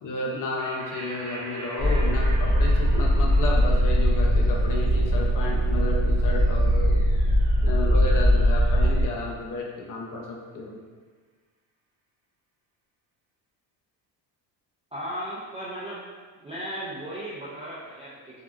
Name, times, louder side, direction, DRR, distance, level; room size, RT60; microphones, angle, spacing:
voice 1, 0.0-7.0 7.6-10.8, left 2 dB, 40° left, -1 dB, 0.6 m, -32 dB
sound 1, 0.6-7.5, right 2 dB, 55° right, 0.8 m, -43 dB
sound 2, 1.8-9.0, equal, 25° left, 1.2 m, -21 dB
voice 2, 14.9-16.0 16.4-18.4, equal, 15° right, -8 dB, 0.3 m, -36 dB
3.6 x 2.3 x 2.4 m, 1.4 s
supercardioid pair, 95°, 49 cm